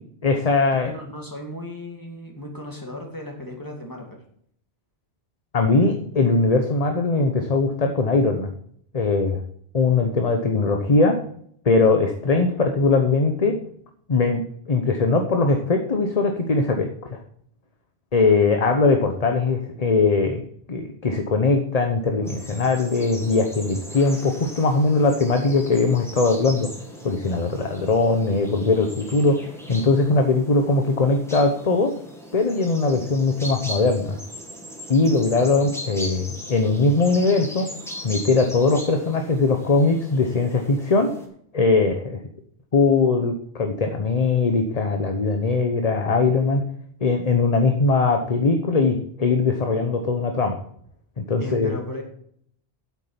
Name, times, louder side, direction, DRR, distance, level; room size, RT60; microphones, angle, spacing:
voice 1, 0.2-0.9 5.5-8.5 8.9-9.4 9.7-11.2 11.6-13.5 14.1-17.2 18.1-20.4 20.7-26.7 27.0-31.9 32.3-34.2 34.9-37.7 38.0-41.1 41.5-42.2 42.7-46.6 47.0-50.6 51.3-51.7, left 3 dB, 40° left, 5 dB, 1.0 m, -20 dB
voice 2, 0.8-4.2 51.4-52.0, left 1 dB, 20° left, 1 dB, 2.5 m, -35 dB
sound 1, 22.2-41.3, equal, ahead, 2.0 m, -39 dB
8.4 x 8.3 x 5.8 m, 0.66 s
omnidirectional pair, 1.1 m